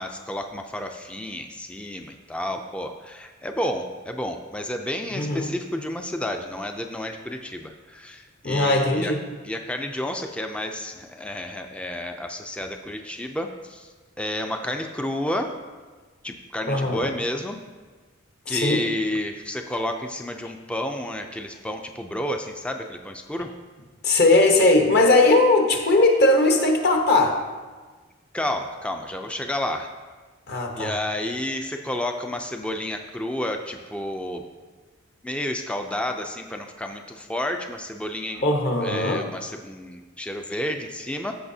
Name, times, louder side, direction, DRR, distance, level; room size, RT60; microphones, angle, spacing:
voice 1, 0.0-9.1 9.4-13.9 14.2-15.5 16.2-17.6 18.5-23.5 28.3-29.9 30.7-34.4 35.2-38.4 38.8-41.3, left 1 dB, 5° left, 4 dB, 0.4 m, -31 dB
voice 2, 5.1-5.5 8.4-9.2 16.7-17.1 18.5-18.8 24.0-27.4 30.5-30.9 38.4-39.2, left 2 dB, 55° left, 2 dB, 1.0 m, -19 dB
14.5 x 5.6 x 2.7 m, 1.4 s
head